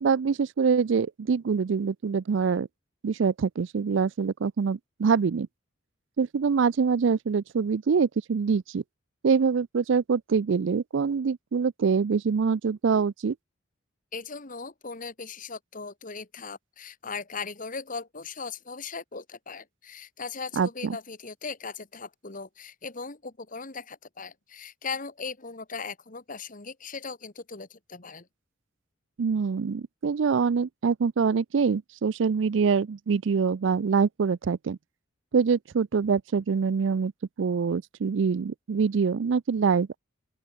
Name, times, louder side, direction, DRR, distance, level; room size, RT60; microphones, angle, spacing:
voice 1, 0.0-2.7 3.0-5.5 6.2-8.8 9.2-13.3 20.6-21.0 29.2-34.8 35.3-37.1 37.4-40.0, right 5 dB, 70° right, 0.4 m, -25 dB
voice 2, 14.1-28.3, left 4 dB, 45° left, 2.0 m, -38 dB
open air
head